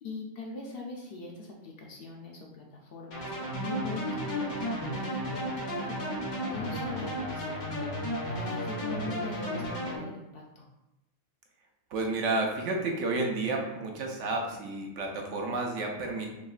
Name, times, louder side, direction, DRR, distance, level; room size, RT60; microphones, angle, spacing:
voice 1, 0.0-6.0 6.5-8.0 8.3-10.7, left 3 dB, 65° left, 0 dB, 0.6 m, -42 dB
sound 1, 3.1-10.0, equal, 90° left, 1.4 m, -33 dB
voice 2, 11.9-16.3, right 2 dB, 70° right, 1 dB, 0.9 m, -31 dB
3.6 x 3.0 x 2.4 m, 0.96 s
omnidirectional pair, 1.4 m